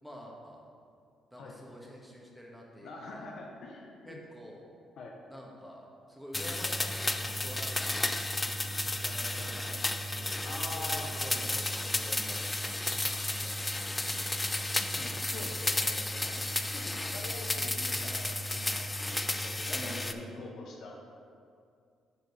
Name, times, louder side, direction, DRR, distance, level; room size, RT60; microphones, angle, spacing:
voice 1, 0.0-0.7 1.3-3.3 4.0-4.7 5.3-8.0 9.0-14.7 16.3-16.7 19.7-20.5, equal, 5° right, -2 dB, 1.4 m, -48 dB
voice 2, 2.8-4.2 5.0-5.1 9.3-9.5 10.4-11.1 14.8-21.0, left 3 dB, 70° left, 0 dB, 0.9 m, -45 dB
sound 1, 6.3-20.1, left 1 dB, 15° left, 0.4 m, -33 dB
6.9 x 4.6 x 5.5 m, 2.4 s
cardioid pair, 90°, 0 cm